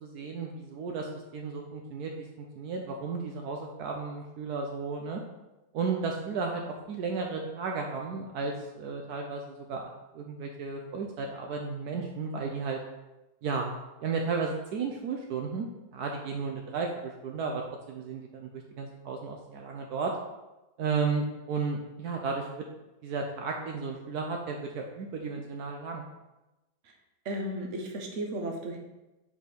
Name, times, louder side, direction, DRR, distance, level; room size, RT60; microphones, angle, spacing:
voice 1, 0.0-5.2 5.7-12.8 13.4-13.7 14.0-20.1 20.8-22.6 23.0-26.1, right 4 dB, 75° right, 1 dB, 1.1 m, -34 dB
voice 2, 27.2-28.8, right 1 dB, 50° right, 2 dB, 1.1 m, -34 dB
5.1 x 4.4 x 5.0 m, 1.0 s
omnidirectional pair, 1.8 m